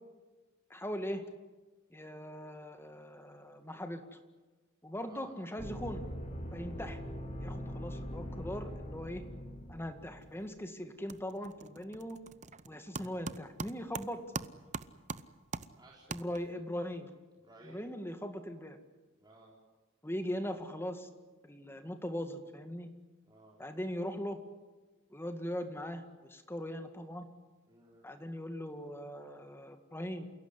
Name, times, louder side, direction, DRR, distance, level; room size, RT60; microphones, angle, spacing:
voice 1, 0.7-1.2 1.9-4.2 4.8-6.0 6.5-7.0 7.4-9.2 9.7-12.2 12.7-14.2 16.1-17.1 17.6-18.8 20.0-21.1 21.4-22.9 23.6-24.4 25.1-26.0 26.3-27.3 28.0-30.3, equal, 10° left, 7 dB, 2.0 m, -40 dB
voice 2, 5.0-5.4 15.8-16.0 17.4-17.8 19.2-19.6 23.3-23.6 27.7-28.1, right 2 dB, 20° right, -4 dB, 4.0 m, -57 dB
sound 1, 5.6-10.5, equal, 35° left, 3.6 m, -42 dB
sound 2, 10.2-10.6 10.9-16.7, right 4 dB, 35° right, 0.7 m, -43 dB
28.5 x 17.0 x 9.8 m, 1.2 s
head